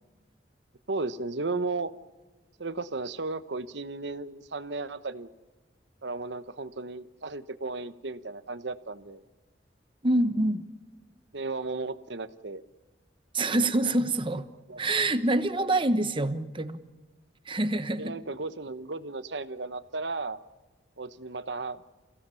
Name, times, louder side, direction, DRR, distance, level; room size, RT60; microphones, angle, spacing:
voice 1, 0.9-1.9 2.6-5.3 6.0-9.2 11.3-12.6 14.7-14.8 18.0-20.4 21.0-21.8, right 3 dB, 70° right, 1.0 m, -34 dB
voice 2, 10.0-10.7 13.3-14.5 14.8-16.8 17.5-18.1, right 2 dB, 30° right, 1.1 m, -26 dB
28.5 x 16.5 x 7.1 m
head